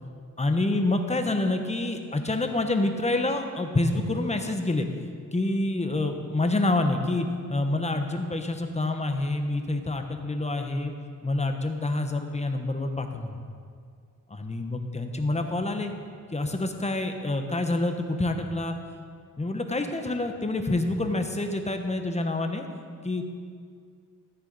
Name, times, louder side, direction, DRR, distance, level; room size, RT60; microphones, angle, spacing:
voice 1, 0.4-4.9 5.3-10.9 11.2-13.4 14.3-15.9 16.3-18.8 19.4-22.7 23.0-23.2, left 2 dB, 20° left, 5 dB, 1.1 m, -27 dB
13.0 x 9.7 x 4.1 m, 2.2 s
cardioid pair, 75°, 32 cm